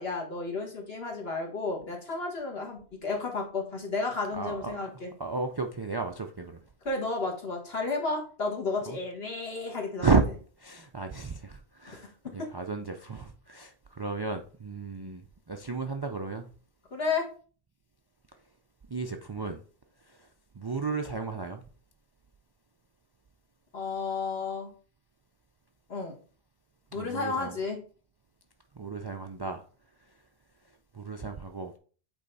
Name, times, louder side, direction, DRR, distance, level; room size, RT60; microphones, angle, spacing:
voice 1, 0.0-5.1 6.8-10.1 11.9-12.0 16.9-17.2 23.7-24.7 25.9-26.2 26.9-27.8, left 3 dB, 65° left, 1.9 m, -32 dB
voice 2, 4.3-4.8 5.2-6.6 8.9-9.0 10.0-10.2 10.6-16.5 18.9-19.6 20.0-20.3 20.5-21.6 26.9-27.6 28.7-29.6 30.1-30.2 30.9-31.7, right 4 dB, 40° right, 0.3 m, -33 dB
8.3 x 3.3 x 4.0 m
omnidirectional pair, 1.1 m